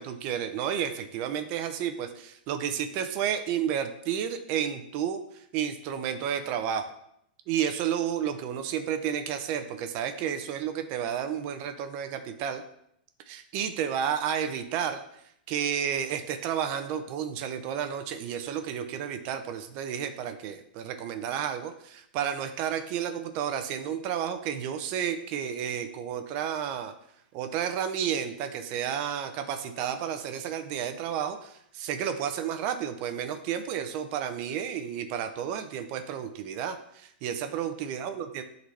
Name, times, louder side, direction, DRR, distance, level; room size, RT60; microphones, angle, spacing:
voice 1, 0.0-5.2 5.5-6.8 7.5-12.6 13.3-15.0 15.5-26.9 27.3-38.4, right 8 dB, 30° right, 8 dB, 0.6 m, -31 dB
11.0 x 3.9 x 3.3 m, 0.72 s
hypercardioid pair, 160°, 5 cm